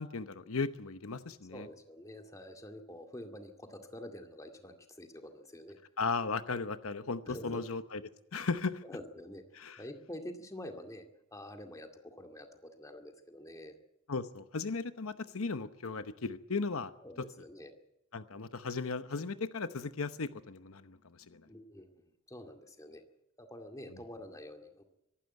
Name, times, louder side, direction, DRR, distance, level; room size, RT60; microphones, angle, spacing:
voice 1, 0.0-1.7 6.0-8.0 8.3-8.8 9.6-9.8 14.1-16.9 18.1-21.0 21.3-21.4, left 4 dB, 85° left, 11 dB, 0.9 m, -36 dB
voice 2, 1.5-5.8 7.3-7.6 8.8-9.4 9.8-11.1 11.3-13.8 17.0-17.7 21.5-23.0 23.4-24.8, left 1 dB, 15° left, 5 dB, 2.2 m, -47 dB
24.5 x 12.0 x 9.3 m, 0.88 s
head